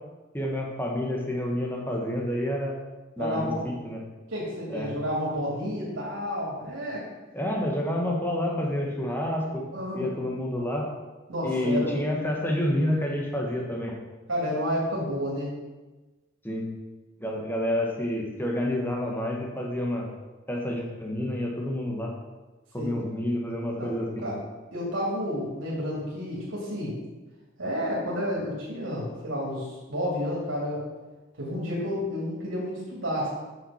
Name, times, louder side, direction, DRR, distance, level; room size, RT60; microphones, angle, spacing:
voice 1, 0.3-2.8 3.2-4.0 4.7-4.9 7.3-9.6 9.9-10.9 11.4-14.0 16.4-16.7 17.2-20.1 20.5-22.1 22.7-24.3, left 1 dB, 10° left, -1 dB, 1.6 m, -29 dB
voice 2, 3.2-3.6 4.3-7.0 9.7-10.0 11.3-12.0 14.3-15.5 22.8-22.9 23.7-23.9 24.2-24.4 24.7-26.9 27.6-30.8 31.4-33.3, equal, 85° right, -5 dB, 2.8 m, -30 dB
8.8 x 6.0 x 5.7 m, 1.2 s
head